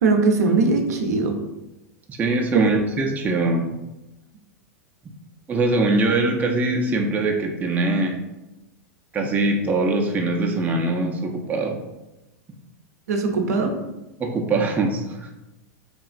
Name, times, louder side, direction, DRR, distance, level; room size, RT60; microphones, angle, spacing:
voice 1, 0.0-1.4 2.5-2.6 13.1-13.7, right 3 dB, 75° right, 4 dB, 0.5 m, -20 dB
voice 2, 2.1-3.7 5.5-8.2 9.1-11.8 14.2-15.3, right 2 dB, 20° right, 2 dB, 0.4 m, -22 dB
2.9 x 2.4 x 2.4 m, 0.98 s
hypercardioid pair, 105°, 9 cm